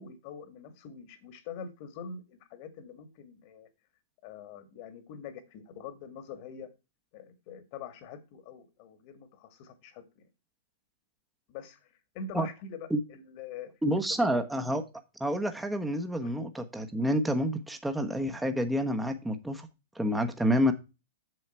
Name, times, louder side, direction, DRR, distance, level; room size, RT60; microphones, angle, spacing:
voice 1, 0.0-3.7 4.2-6.7 7.1-10.3 11.5-11.9 12.1-14.0 16.2-16.3, left 5 dB, 45° left, 1.9 m, -44 dB
voice 2, 13.8-14.9 15.2-19.7 19.9-20.7, equal, 5° right, 1.2 m, -28 dB
7.8 x 7.1 x 4.4 m
hypercardioid pair, 110°, 0 cm